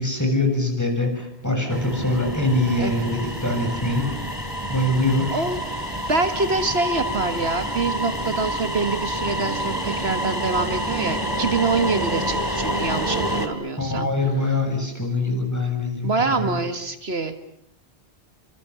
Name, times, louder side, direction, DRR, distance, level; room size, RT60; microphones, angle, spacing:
voice 1, 0.0-4.2 4.7-5.4 13.8-16.6, left 2 dB, 15° left, 3 dB, 7.4 m, -23 dB
sound 1, 1.7-13.5, equal, 20° right, 3.3 m, -28 dB
voice 2, 5.3-5.6 6.1-14.1 16.0-17.4, right 3 dB, 70° right, 8 dB, 2.0 m, -25 dB
29.5 x 26.5 x 7.1 m, 0.70 s
omnidirectional pair, 1.1 m